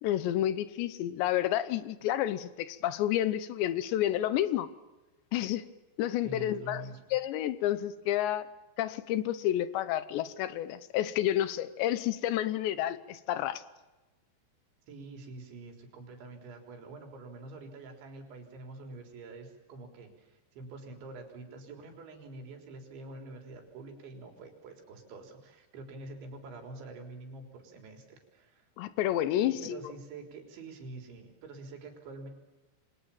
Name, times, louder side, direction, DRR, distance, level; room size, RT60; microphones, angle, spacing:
voice 1, 0.0-4.7 5.3-5.7 6.0-6.9 7.1-8.5 8.8-13.6 28.8-29.8, left 12 dB, 80° left, 15 dB, 3.1 m, -30 dB
voice 2, 6.2-7.0 14.9-28.7 29.4-32.3, right 3 dB, 80° right, 4 dB, 6.2 m, -46 dB
28.5 x 24.5 x 7.2 m, 1.1 s
omnidirectional pair, 5.2 m